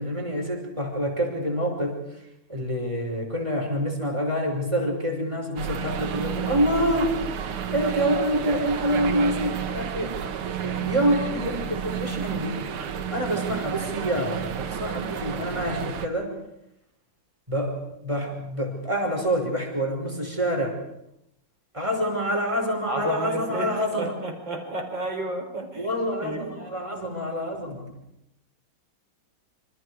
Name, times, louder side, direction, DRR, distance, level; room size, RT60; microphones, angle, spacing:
voice 1, 0.0-2.2 2.5-7.2 7.7-10.2 10.6-12.6 12.9-16.3 17.5-20.8 21.7-24.1 25.8-27.9, equal, 15° right, 2 dB, 5.6 m, -27 dB
sound 1, 5.6-16.1, right 8 dB, 90° right, 2.2 m, -31 dB
voice 2, 22.9-25.9 26.2-26.5, right 2 dB, 60° right, 3 dB, 5.3 m, -31 dB
27.5 x 26.5 x 4.9 m, 0.80 s
omnidirectional pair, 2.3 m